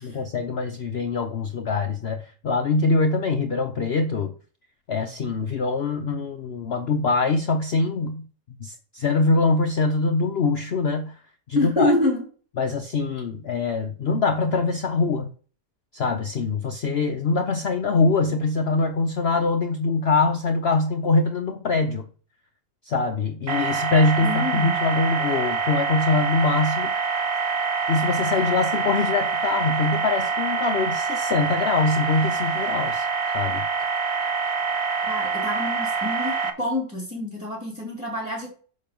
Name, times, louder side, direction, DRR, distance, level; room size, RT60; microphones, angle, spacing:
voice 1, 0.0-4.3 4.9-8.3 8.6-11.1 11.5-11.9 12.6-15.3 15.9-22.1 22.9-26.9 27.9-33.1 33.3-33.7, left 3 dB, 50° left, 5 dB, 0.8 m, -23 dB
voice 2, 11.5-12.2 24.2-24.7 35.1-36.3 36.6-38.5, left 1 dB, 5° right, -4 dB, 3.1 m, -26 dB
sound 1, 23.5-36.5, right 5 dB, 45° right, 1.1 m, -26 dB
6.8 x 5.7 x 5.2 m, 0.40 s
omnidirectional pair, 1.6 m